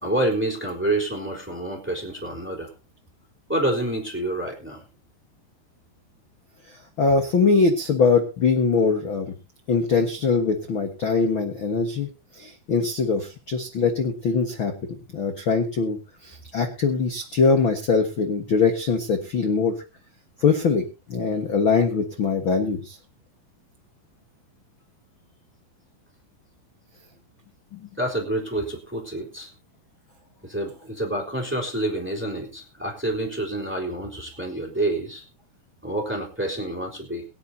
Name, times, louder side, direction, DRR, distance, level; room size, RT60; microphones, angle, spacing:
voice 1, 0.0-2.7 3.5-4.8 28.0-29.5 30.4-35.2 35.8-37.2, right 1 dB, 5° right, 0 dB, 3.0 m, -28 dB
voice 2, 6.7-9.3 9.7-12.1 12.3-19.8 20.4-23.0 27.7-27.9, left 5 dB, 65° left, 5 dB, 1.2 m, -22 dB
22.5 x 9.6 x 2.8 m, 0.30 s
omnidirectional pair, 4.6 m